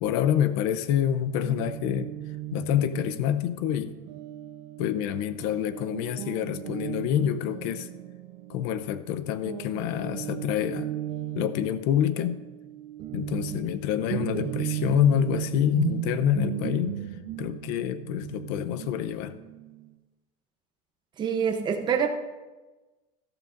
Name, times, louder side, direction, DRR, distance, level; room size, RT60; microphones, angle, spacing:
voice 1, 0.0-2.1 2.5-3.9 4.8-7.9 8.5-10.9 11.3-12.4 13.1-17.0 17.4-19.4, left 10 dB, 70° left, 13 dB, 0.7 m, -27 dB
Guitar, 1.4-9.1 9.4-19.9, right 12 dB, 60° right, 0.9 m, -36 dB
voice 2, 21.2-22.1, right 7 dB, 25° right, 4 dB, 0.8 m, -26 dB
13.5 x 12.5 x 2.6 m, 1.2 s
cardioid pair, 135°, 17 cm